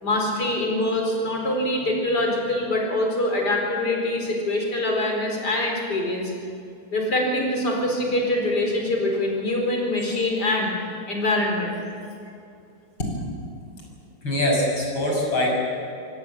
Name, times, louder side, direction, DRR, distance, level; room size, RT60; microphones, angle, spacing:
voice 1, 0.0-6.3 6.9-10.7 11.1-11.7, left 1 dB, 50° left, 1 dB, 5.0 m, -24 dB
voice 2, 14.2-15.5, left 1 dB, 80° left, -2 dB, 7.5 m, -23 dB
26.5 x 18.0 x 7.6 m, 2.5 s
omnidirectional pair, 2.2 m